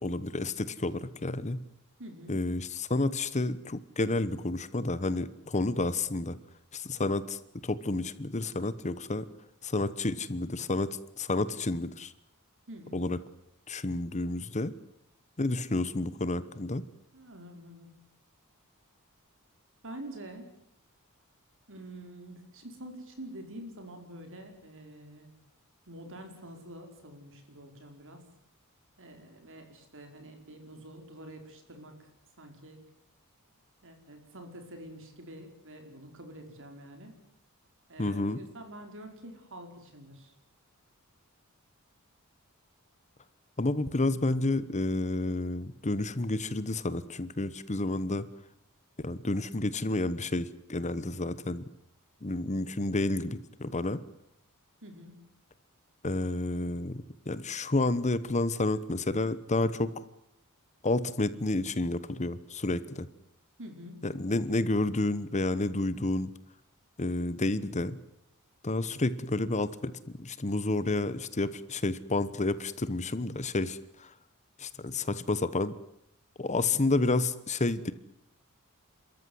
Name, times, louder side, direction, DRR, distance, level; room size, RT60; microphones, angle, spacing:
voice 1, 0.0-1.6 2.3-6.3 6.7-9.3 9.6-12.1 12.9-13.2 13.7-14.7 15.4-16.8 38.0-38.4 43.6-48.3 49.0-51.7 52.2-54.0 56.0-59.9 60.8-63.1 64.0-66.3 67.0-68.0 68.6-69.9 70.2-74.1 74.6-75.7 76.4-77.9, left 2 dB, 30° left, 15 dB, 1.1 m, -30 dB
voice 2, 2.0-2.4 12.7-13.0 17.1-18.0 19.8-20.5 21.7-25.4 25.9-28.3 29.0-32.1 32.4-32.8 33.8-37.2 37.9-40.3 54.8-55.2 63.6-64.1, right 1 dB, 60° right, 5 dB, 5.0 m, -47 dB
29.5 x 14.0 x 9.5 m, 0.78 s
head